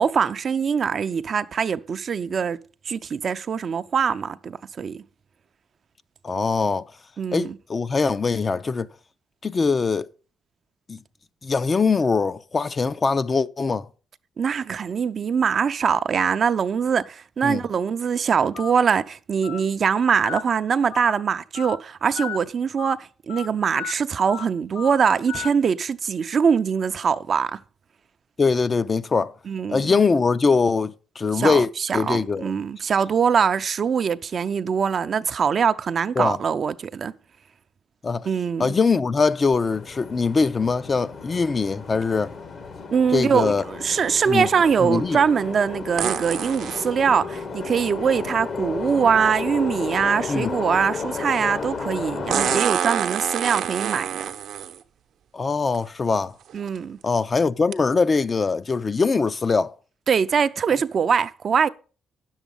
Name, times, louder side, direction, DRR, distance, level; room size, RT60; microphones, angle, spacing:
voice 1, 0.0-2.6 2.9-5.0 7.2-7.6 14.4-27.6 29.5-29.9 31.3-37.1 38.2-38.7 42.9-54.2 56.5-57.0 60.1-61.7, right 6 dB, 50° right, 0.5 m, -23 dB
voice 2, 6.2-6.9 7.3-8.9 9.4-10.1 10.9-11.0 11.4-13.8 17.4-17.6 28.4-29.3 29.7-31.7 31.9-32.5 36.2-36.4 38.0-38.3 38.6-42.3 43.1-43.6 44.3-44.5 44.8-45.2 50.3-50.5 55.3-56.3 57.0-59.7, left 4 dB, 35° left, 0.5 m, -22 dB
Telephone, 18.5-18.7 19.4-19.6 20.2-20.4 20.9-21.1 21.6-21.8 22.2-22.4 22.8-22.9 23.3-23.5 23.8-23.9 24.3-24.5 24.8-25.0 25.3-25.5, left 9 dB, 90° left, 0.8 m, -33 dB
sound 1, 39.6-52.6, left 4 dB, 50° left, 1.0 m, -33 dB
sound 2, 46.0-46.9 48.9-49.0 52.3-54.8 55.7-55.8 56.5-56.8 57.7-57.8, right 9 dB, 75° right, 0.8 m, -26 dB
9.9 x 7.2 x 5.4 m
cardioid pair, 90°, 0 cm